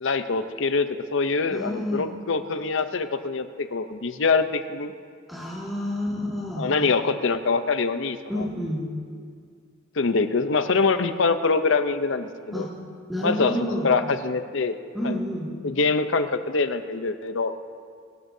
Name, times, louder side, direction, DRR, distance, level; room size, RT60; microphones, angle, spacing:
voice 1, 0.0-4.9 6.6-8.4 10.0-12.7 13.2-13.5 13.8-14.8 15.0-15.2 15.6-17.5, left 4 dB, 70° left, 10 dB, 0.7 m, -24 dB
voice 2, 1.5-2.1 5.3-6.7 8.3-8.8 12.5-12.7 13.1-13.9 14.9-15.5, equal, ahead, -7 dB, 2.1 m, -29 dB
24.0 x 12.5 x 2.7 m, 2.1 s
head